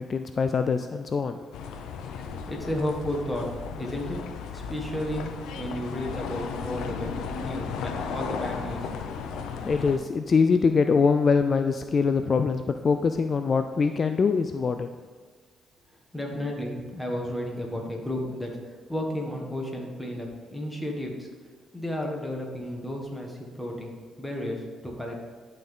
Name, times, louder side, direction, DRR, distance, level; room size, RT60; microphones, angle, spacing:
voice 1, 0.0-1.4 9.6-14.9, left 5 dB, 40° left, 8 dB, 0.3 m, -23 dB
sound 1, 1.5-10.0, left 6 dB, 85° left, 0.6 m, -35 dB
voice 2, 2.5-3.5 3.8-4.2 4.5-8.9 16.1-21.3 21.7-23.9 24.2-25.2, left 1 dB, 5° left, -1 dB, 1.6 m, -33 dB
11.0 x 4.0 x 3.7 m, 1.5 s
cardioid pair, 90°, 0 cm